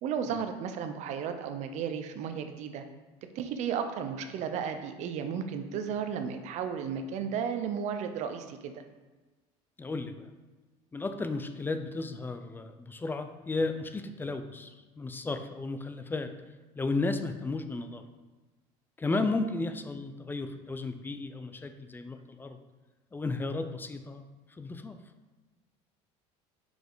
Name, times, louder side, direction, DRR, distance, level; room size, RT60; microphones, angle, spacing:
voice 1, 0.0-2.8 3.3-8.8 19.1-19.3, right 7 dB, 60° right, 8 dB, 0.6 m, -34 dB
voice 2, 9.8-10.3 10.9-16.3 16.8-18.0 19.0-22.6 23.1-24.3 24.6-25.0, left 3 dB, 15° left, 9 dB, 0.4 m, -34 dB
5.0 x 5.0 x 3.9 m, 1.2 s
supercardioid pair, 110°, 14 cm